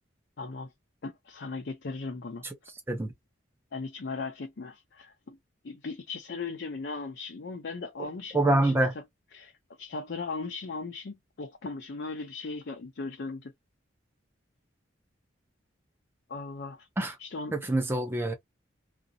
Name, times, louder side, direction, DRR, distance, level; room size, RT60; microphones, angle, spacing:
voice 1, 0.4-0.7 1.0-2.4 3.7-5.4 5.6-9.0 9.3-9.5 9.8-13.5 16.3-16.9 17.2-17.6, left 3 dB, 60° left, 0.5 m, -38 dB
voice 2, 8.3-8.9 17.0-17.1 17.5-18.3, right 2 dB, 10° right, 0.5 m, -25 dB
2.5 x 2.0 x 2.6 m
head